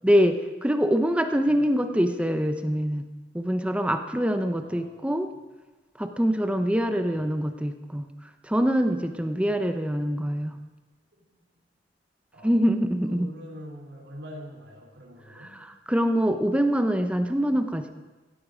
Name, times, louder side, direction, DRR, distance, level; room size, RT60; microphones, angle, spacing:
voice 1, 0.0-3.0 3.3-5.3 6.0-8.1 8.4-10.6 12.4-13.3 15.9-17.9, equal, 5° right, 7 dB, 0.7 m, -24 dB
voice 2, 4.6-5.2 7.0-7.2 11.1-11.6 12.3-12.6 13.0-15.5, equal, 90° right, 0 dB, 3.5 m, -44 dB
16.5 x 14.5 x 5.0 m, 1.2 s
head